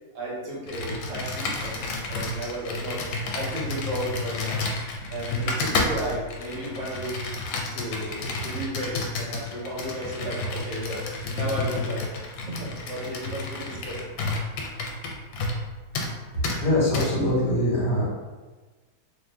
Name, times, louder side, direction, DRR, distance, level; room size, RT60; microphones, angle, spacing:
voice 1, 0.1-3.0 3.3-4.6 5.1-7.3 7.7-11.0 11.3-12.1 12.4-14.0, equal, 55° right, -5 dB, 1.1 m, -34 dB
Computer keyboard, 0.7-15.7 15.9-16.1 16.4-16.6 16.9-17.1, left 2 dB, 85° left, 1.2 m, -31 dB
voice 2, 16.6-18.1, left 1 dB, 65° left, -5 dB, 1.5 m, -23 dB
2.7 x 2.6 x 3.3 m, 1.3 s
omnidirectional pair, 1.8 m